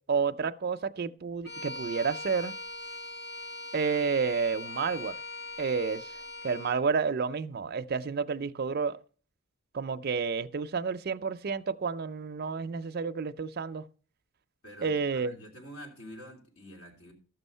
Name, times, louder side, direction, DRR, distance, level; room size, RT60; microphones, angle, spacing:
voice 1, 0.1-2.6 3.7-5.2 5.6-6.1 6.4-9.0 9.7-13.8 14.8-15.4, right 5 dB, 45° right, 0.4 m, -30 dB
Bowed string instrument, 1.4-6.8, left 2 dB, 45° left, 3.5 m, -41 dB
voice 2, 14.6-17.1, equal, 75° left, 3.1 m, -47 dB
13.5 x 6.2 x 5.5 m
head